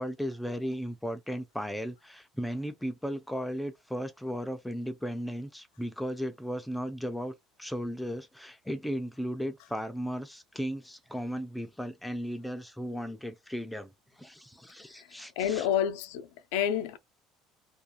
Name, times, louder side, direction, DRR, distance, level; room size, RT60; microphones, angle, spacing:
voice 1, 0.0-13.9 14.2-15.7, equal, 5° left, 0.4 m, -36 dB
voice 2, 15.4-17.0, left 9 dB, 90° left, 0.4 m, -29 dB
2.4 x 2.3 x 2.7 m
cardioid pair, 135°, 0 cm